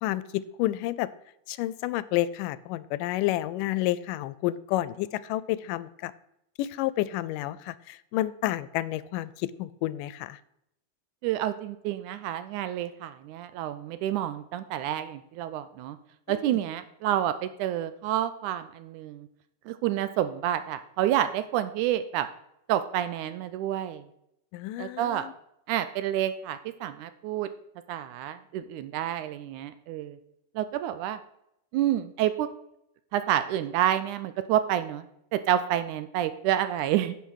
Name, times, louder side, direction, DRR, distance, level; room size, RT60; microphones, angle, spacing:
voice 1, 0.0-1.1 1.5-6.1 6.6-9.3 9.6-10.4 16.3-16.6 24.5-25.3, left 15 dB, 85° left, 18 dB, 2.1 m, -30 dB
voice 2, 11.2-16.0 16.3-19.3 19.7-22.3 22.7-24.0 24.8-25.3 25.7-27.5 27.9-30.2 30.6-31.2 31.7-32.5 33.1-35.1 35.3-37.2, right 11 dB, 80° right, 12 dB, 1.9 m, -29 dB
10.0 x 5.7 x 6.3 m, 0.78 s
omnidirectional pair, 3.8 m